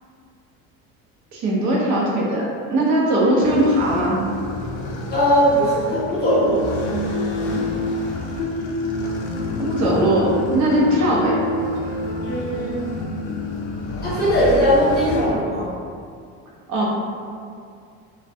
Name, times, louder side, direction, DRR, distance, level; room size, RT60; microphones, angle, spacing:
voice 1, 1.3-4.2 9.6-11.4 16.7-16.9, right 1 dB, 55° right, -4 dB, 0.7 m, -19 dB
sound 1, 3.4-15.3, left 1 dB, 60° left, 0.5 m, -27 dB
voice 2, 5.1-6.7 12.2-12.8 14.0-15.7, equal, 30° left, -9 dB, 0.7 m, -19 dB
2.2 x 2.2 x 2.6 m, 2.3 s
cardioid pair, 115°, 34 cm